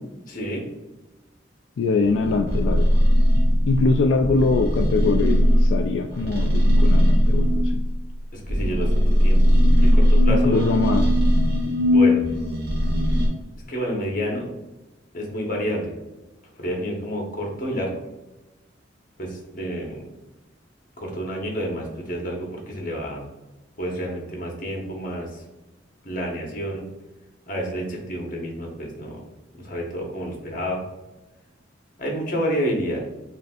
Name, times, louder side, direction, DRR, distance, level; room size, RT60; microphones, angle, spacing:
voice 1, 0.3-0.6 8.3-9.4 9.8-10.7 11.9-12.2 13.7-14.5 15.1-15.9 16.6-17.9 19.2-20.0 21.0-23.2 23.8-25.4 26.0-26.9 27.5-29.2 29.5-30.8 32.0-33.0, equal, 45° left, 0 dB, 1.1 m, -29 dB
voice 2, 1.8-2.8 3.7-7.5 10.3-11.1, left 4 dB, 80° left, 5 dB, 0.3 m, -22 dB
sound 1, 2.0-8.1 8.5-13.3, equal, 55° right, 0.9 m, -19 dB
6.6 x 2.6 x 2.4 m, 1.1 s
head